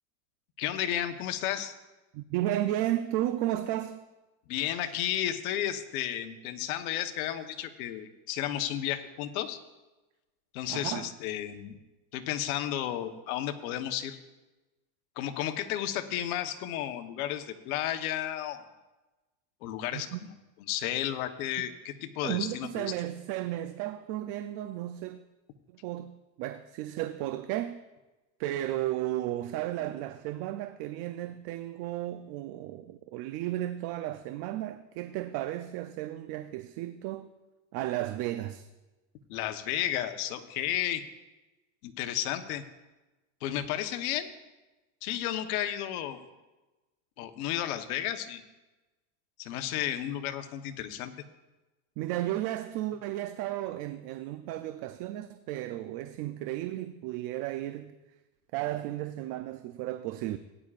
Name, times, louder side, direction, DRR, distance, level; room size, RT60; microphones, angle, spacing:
voice 1, 0.6-1.7 4.5-9.6 10.5-11.8 12.1-14.2 15.2-18.6 19.6-20.3 20.7-22.9 39.3-41.0 41.8-42.6 43.4-44.3 45.0-46.2 47.2-48.4 49.4-51.1, left 11 dB, 85° left, 1.1 m, -33 dB
voice 2, 2.1-4.0 10.7-11.1 19.9-20.2 22.2-25.2 25.8-27.8 28.4-37.3 37.7-38.7 52.0-58.0 58.5-60.4, right 14 dB, 60° right, 0.6 m, -34 dB
17.5 x 9.9 x 2.5 m
supercardioid pair, 135°, 42 cm